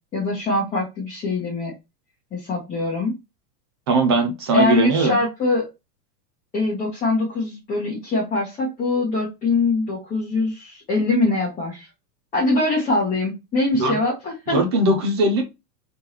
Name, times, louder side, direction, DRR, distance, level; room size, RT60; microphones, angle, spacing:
voice 1, 0.1-1.7 2.3-3.2 4.5-5.7 6.5-11.9 12.3-14.6, left 2 dB, 15° left, 1.4 m, -23 dB
voice 2, 3.9-5.2 13.7-14.0 14.5-15.4, right 2 dB, 20° right, 0.4 m, -19 dB
3.7 x 3.4 x 2.8 m
supercardioid pair, 170°, 47 cm